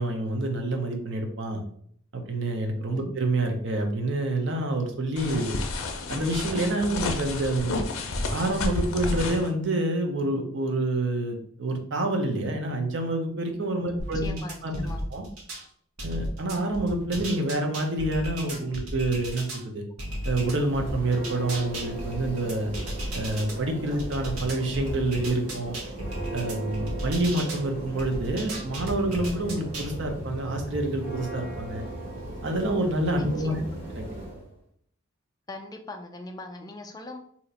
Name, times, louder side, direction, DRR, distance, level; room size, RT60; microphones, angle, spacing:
voice 1, 0.0-1.6 2.1-5.6 6.1-7.7 8.3-14.4 14.6-14.8 15.1-15.2 16.0-19.8 20.2-22.7 23.1-25.8 26.3-31.8 32.4-33.6 33.9-34.0, right 2 dB, 55° right, 4 dB, 0.6 m, -27 dB
sound 1, 5.2-9.5, left 2 dB, 70° left, 0.5 m, -30 dB
voice 2, 13.8-15.0 33.2-33.8 35.5-37.2, left 1 dB, 20° left, 3 dB, 0.3 m, -40 dB
sound 2, 14.0-15.6 16.0-19.6 20.0-23.5 24.0-27.6 28.0-29.9, right 1 dB, 90° right, 0.8 m, -35 dB
Church bell, 20.2-34.4, right 2 dB, 40° right, 1.0 m, -38 dB
2.8 x 2.4 x 4.1 m, 0.64 s
head